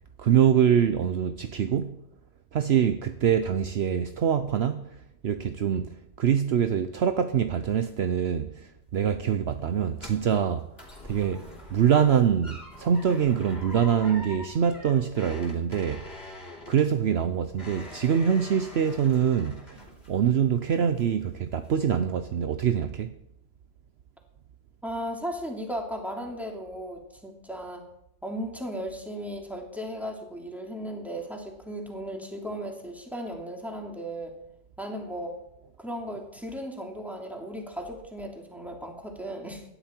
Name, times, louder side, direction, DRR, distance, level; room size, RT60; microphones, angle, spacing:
voice 1, 0.2-2.0 2.5-4.8 5.2-5.9 6.2-10.7 11.1-11.4 11.7-16.0 16.7-19.8 20.1-23.1, right 8 dB, 60° right, 0.9 m, -24 dB
sound 1, 8.8-20.4 20.7-21.2 21.6-21.7, left 2 dB, 55° left, 3.4 m, -45 dB
voice 2, 24.8-27.9 28.2-34.3 34.8-35.4 35.8-39.6, equal, ahead, 2.7 m, -36 dB
17.5 x 11.5 x 4.5 m
omnidirectional pair, 1.3 m